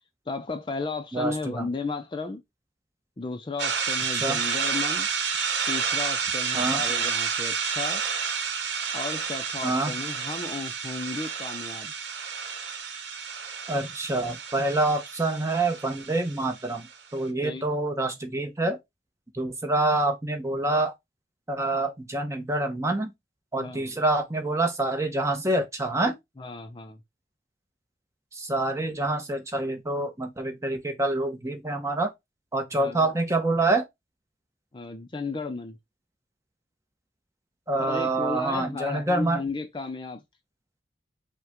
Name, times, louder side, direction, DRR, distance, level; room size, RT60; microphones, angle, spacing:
voice 1, 0.3-2.4 3.2-5.1 5.7-8.0 8.9-11.9 17.4-17.6 23.6-23.9 26.4-27.0 32.8-33.1 34.7-35.8 37.8-40.2, left 3 dB, 25° left, 0.4 m, -34 dB
voice 2, 1.1-1.7 4.1-4.4 6.5-6.8 9.6-9.9 13.7-16.9 17.1-18.8 19.3-20.9 21.5-23.1 23.5-26.1 28.3-32.1 32.5-33.8 37.7-39.4, right 2 dB, 15° right, 0.8 m, -26 dB
sound 1, 3.6-16.9, right 6 dB, 90° right, 0.8 m, -30 dB
5.5 x 2.2 x 3.6 m
head